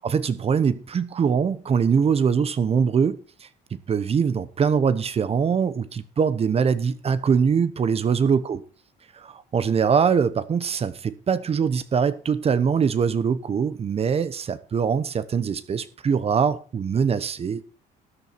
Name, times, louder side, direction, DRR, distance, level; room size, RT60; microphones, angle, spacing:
voice 1, 0.0-8.6 9.1-17.6, right 6 dB, 35° right, 1.0 m, -23 dB
13.0 x 9.3 x 4.3 m
cardioid pair, 110°, 17 cm